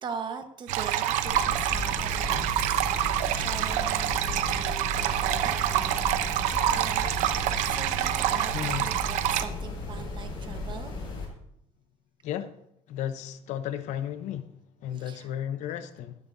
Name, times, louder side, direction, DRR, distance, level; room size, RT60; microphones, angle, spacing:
voice 1, 0.0-10.9 14.9-15.3, right 6 dB, 40° right, 1.2 m, -41 dB
sound 1, 0.7-9.4, right 12 dB, 85° right, 0.8 m, -27 dB
sound 2, 1.3-11.3, left 3 dB, 40° left, 5.3 m, -36 dB
voice 2, 8.5-8.8 12.2-12.5 12.9-14.5 14.8-16.1, left 10 dB, 75° left, 0.9 m, -33 dB
17.0 x 11.0 x 2.7 m
cardioid pair, 145°, 12 cm